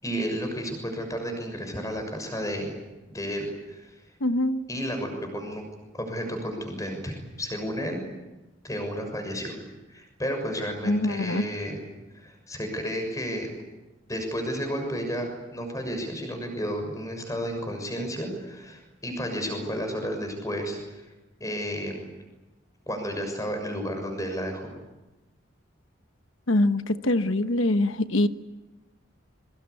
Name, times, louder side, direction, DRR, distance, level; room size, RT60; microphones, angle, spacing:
voice 1, 0.0-2.8 3.1-3.9 4.7-5.6 5.9-8.0 8.6-9.6 9.9-11.8 12.1-13.5 14.1-21.0 21.4-22.1 22.9-24.7, equal, 15° left, 5 dB, 6.6 m, -32 dB
voice 2, 4.2-4.6 10.8-11.4 26.5-28.3, left 1 dB, 80° left, 10 dB, 1.2 m, -23 dB
26.0 x 24.0 x 8.4 m, 1.1 s
head